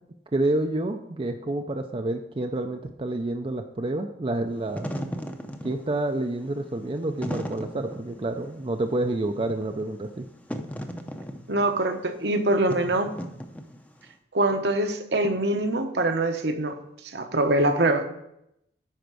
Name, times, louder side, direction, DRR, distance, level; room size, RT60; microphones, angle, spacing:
voice 1, 0.3-4.9 5.6-10.3, right 2 dB, 30° right, 5 dB, 0.5 m, -28 dB
Wind / Fire, 4.5-14.0, equal, 10° left, 0.7 m, -37 dB
voice 2, 11.5-13.1 14.3-16.8 17.1-18.0, right 2 dB, 65° right, 6 dB, 1.0 m, -24 dB
10.5 x 4.5 x 6.2 m, 0.80 s
head